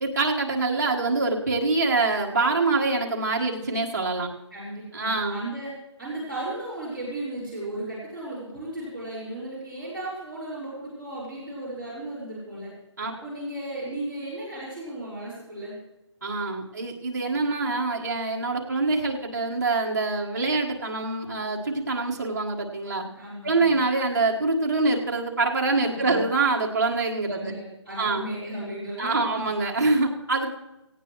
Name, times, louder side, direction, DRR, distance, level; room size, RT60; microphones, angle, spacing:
voice 1, 0.0-4.3 4.9-5.4 13.0-13.1 16.2-23.0 23.4-27.5 28.0-28.2 29.0-30.6, right 3 dB, 35° right, -1 dB, 1.6 m, -25 dB
voice 2, 4.5-5.7 6.0-12.7 13.1-15.7 23.1-23.7 25.9-26.2 27.3-29.4, right 1 dB, ahead, -16 dB, 3.9 m, -35 dB
17.5 x 16.5 x 3.1 m, 0.93 s
hypercardioid pair, 180°, 16 cm